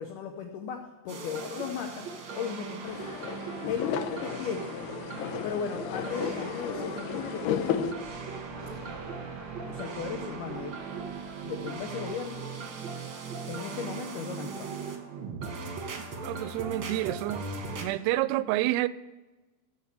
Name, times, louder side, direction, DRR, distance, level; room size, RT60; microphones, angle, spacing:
voice 1, 0.0-2.1 2.3-3.1 3.7-4.7 5.4-7.8 9.7-10.8 11.4-12.4 13.5-14.7, left 7 dB, 75° left, 2.0 m, -36 dB
sound 1, 1.1-17.8, right 5 dB, 55° right, 1.5 m, -39 dB
sound 2, 2.8-7.9, left 8 dB, 90° left, 2.9 m, -34 dB
sound 3, 7.5-13.1, right 2 dB, 30° right, 1.0 m, -48 dB
voice 2, 16.2-17.5 17.8-18.9, right 16 dB, 90° right, 2.6 m, -28 dB
14.5 x 5.5 x 8.3 m
omnidirectional pair, 4.6 m